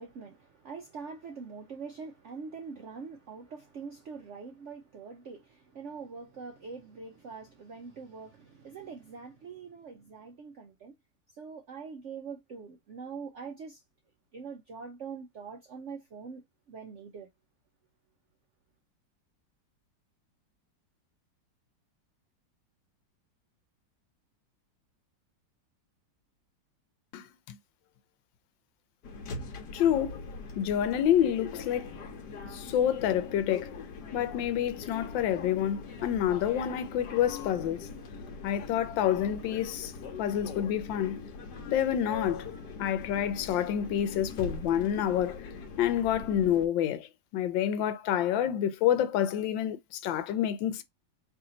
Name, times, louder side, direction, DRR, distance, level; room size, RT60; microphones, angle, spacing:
voice 1, 0.0-10.9 11.4-13.8 14.3-16.4 16.7-17.3, right 5 dB, 70° right, 0.7 m, -43 dB
voice 2, 27.1-27.6 29.7-30.3 30.6-31.9 32.5-33.8 34.1-37.9 38.4-39.9 40.2-41.2 41.7-42.5 42.8-45.5 45.8-47.1 47.3-50.8, left 10 dB, 85° left, 1.3 m, -28 dB
sound 1, 29.0-46.7, left 4 dB, 70° left, 1.3 m, -42 dB
3.3 x 2.7 x 3.8 m
omnidirectional pair, 2.0 m